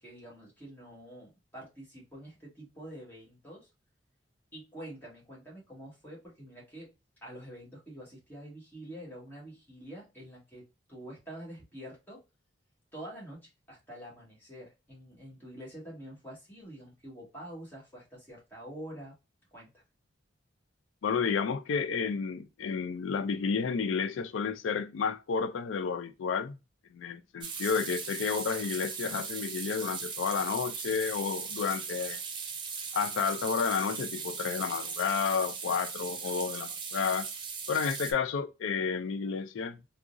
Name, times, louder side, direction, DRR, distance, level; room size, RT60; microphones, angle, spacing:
voice 1, 0.0-3.7 4.5-6.9 7.2-12.2 12.9-19.2 19.5-19.7, right 1 dB, 10° left, 1.3 m, -47 dB
voice 2, 21.0-26.6 26.9-32.2 32.9-37.3 37.7-39.8, left 6 dB, 85° left, 0.4 m, -31 dB
sound 1, 27.4-38.1, right 5 dB, 25° right, 0.4 m, -38 dB
3.6 x 2.0 x 2.4 m
head